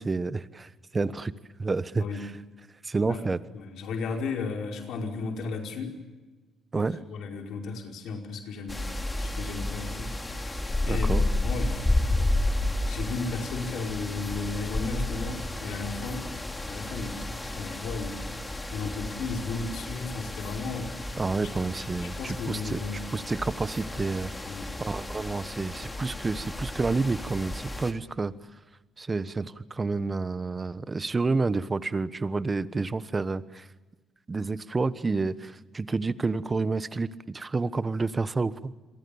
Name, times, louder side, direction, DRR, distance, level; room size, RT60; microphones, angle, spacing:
voice 1, 0.0-1.3 1.6-2.3 2.8-3.4 6.7-7.0 10.9-11.3 21.2-22.8 23.1-24.3 24.8-28.3 29.0-33.6 34.3-38.7, right 3 dB, 25° right, 15 dB, 1.2 m, -29 dB
voice 2, 3.5-5.9 6.8-8.9 9.2-11.9 12.9-16.2 16.7-18.2 18.7-21.1 21.4-23.0 24.4-24.7, left 4 dB, 75° left, 3 dB, 5.0 m, -35 dB
sound 1, 8.7-27.9, left 2 dB, 15° left, 2.9 m, -32 dB
29.0 x 23.0 x 7.1 m, 1.2 s
cardioid pair, 90°, 0 cm